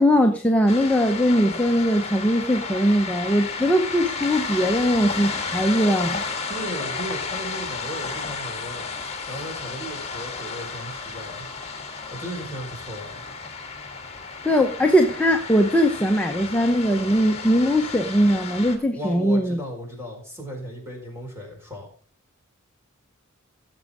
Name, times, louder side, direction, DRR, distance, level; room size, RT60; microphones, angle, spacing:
voice 1, 0.0-6.2 14.4-19.6, equal, 5° left, 3 dB, 0.8 m, -20 dB
sound 1, 0.7-18.8, left 4 dB, 30° left, 1.9 m, -33 dB
voice 2, 6.5-8.8 9.3-11.5 12.1-13.2 18.8-21.9, equal, 10° right, 0 dB, 4.7 m, -36 dB
16.5 x 7.3 x 3.6 m, 0.42 s
head